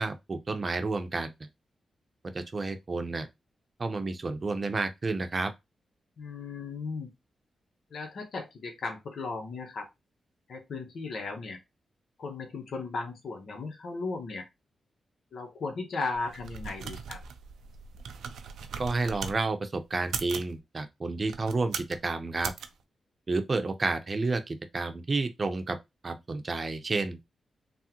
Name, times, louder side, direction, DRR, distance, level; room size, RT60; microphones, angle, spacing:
voice 1, 0.0-1.3 2.3-3.3 3.8-5.5 18.8-22.5 23.3-25.8 26.0-27.2, right 3 dB, 40° right, 0.6 m, -30 dB
voice 2, 6.2-7.1 7.9-9.9 10.5-11.6 12.2-14.5 15.3-17.2, left 3 dB, 75° left, 0.7 m, -36 dB
sound 1, 16.1-19.4 20.0-20.5 21.2-22.0 22.4-22.7, right 6 dB, 90° right, 0.4 m, -39 dB
3.6 x 2.0 x 2.8 m
cardioid pair, 65°, 0 cm